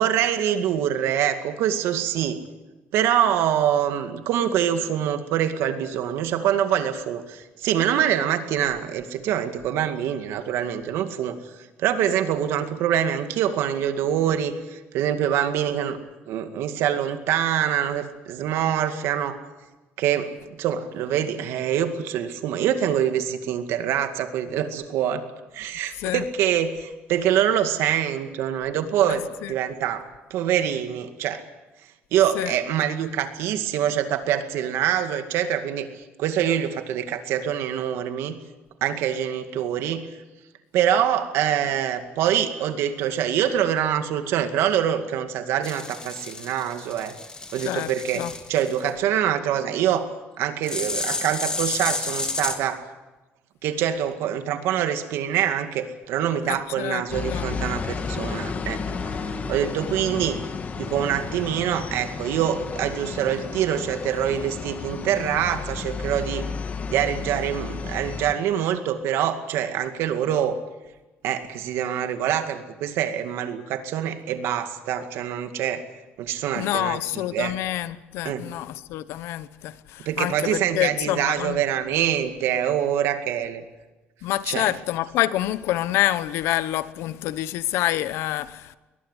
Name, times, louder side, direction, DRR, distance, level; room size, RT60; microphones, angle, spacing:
voice 1, 0.0-2.4 2.9-11.4 11.8-16.0 16.3-19.4 20.0-20.3 20.6-25.3 25.5-30.0 30.3-31.4 32.1-35.9 36.2-38.4 38.8-40.1 40.7-47.1 47.5-50.1 50.4-52.8 53.6-60.4 60.8-66.5 66.9-70.6 71.2-75.8 76.2-77.5 78.2-78.5 80.0-83.6 84.5-84.7, right 10 dB, 85° right, 2.2 m, -25 dB
voice 2, 29.1-29.5 32.3-32.5 47.6-48.3 56.4-57.0 57.3-57.5 76.6-81.6 84.2-88.8, left 14 dB, 90° left, 1.0 m, -27 dB
sound 1, 45.6-48.9 50.6-52.6, left 3 dB, 20° left, 2.4 m, -31 dB
sound 2, 57.1-68.3, left 5 dB, 35° left, 1.7 m, -32 dB
22.0 x 20.0 x 8.2 m
cardioid pair, 130°, 4 cm